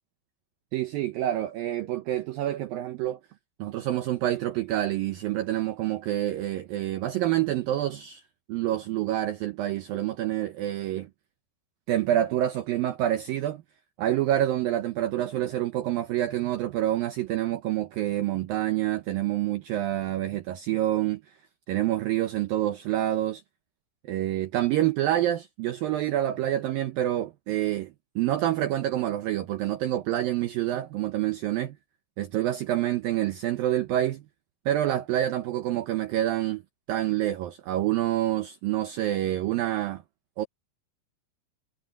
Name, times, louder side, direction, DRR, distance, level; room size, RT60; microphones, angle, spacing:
voice 1, 0.7-3.2 3.6-8.2 8.5-11.1 11.9-13.6 14.0-21.2 21.7-23.4 24.0-31.8 32.2-34.2 34.7-36.6 36.9-40.0 40.4-40.5, right 13 dB, 90° right, 2.0 m, -27 dB
omnidirectional pair, 5.4 m